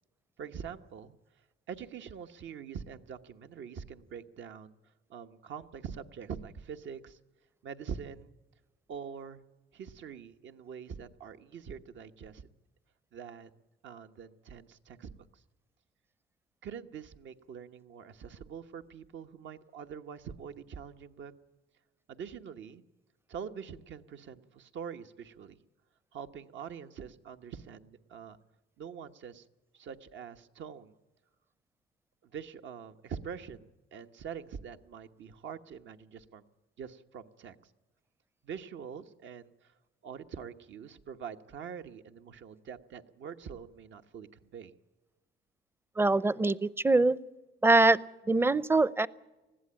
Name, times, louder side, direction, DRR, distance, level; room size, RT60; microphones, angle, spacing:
voice 1, 0.4-1.2 1.7-4.7 5.1-7.2 7.6-8.3 8.9-9.4 9.7-12.4 13.1-13.5 13.8-15.3 16.6-21.3 22.1-22.8 23.3-25.6 26.1-28.4 28.8-29.4 29.7-30.9 32.2-36.4 36.8-37.5 38.4-39.7 40.0-44.7, right 7 dB, 70° right, 8 dB, 1.2 m, -44 dB
voice 2, 46.0-47.2 47.6-48.0 48.3-49.1, right 2 dB, 10° right, 20 dB, 0.6 m, -23 dB
20.5 x 15.0 x 8.9 m, 1.1 s
cardioid pair, 90°, 20 cm